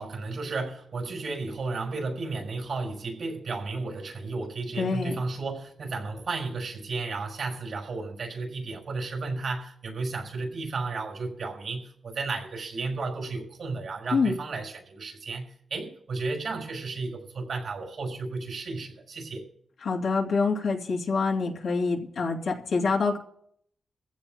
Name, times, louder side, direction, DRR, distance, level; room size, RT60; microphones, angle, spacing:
voice 1, 0.0-19.5, right 3 dB, 70° right, 0 dB, 5.6 m, -33 dB
voice 2, 4.8-5.2 14.1-14.3 19.8-23.2, left 4 dB, 80° left, -1 dB, 2.9 m, -26 dB
23.0 x 15.5 x 2.3 m, 0.63 s
cardioid pair, 90°, 0 cm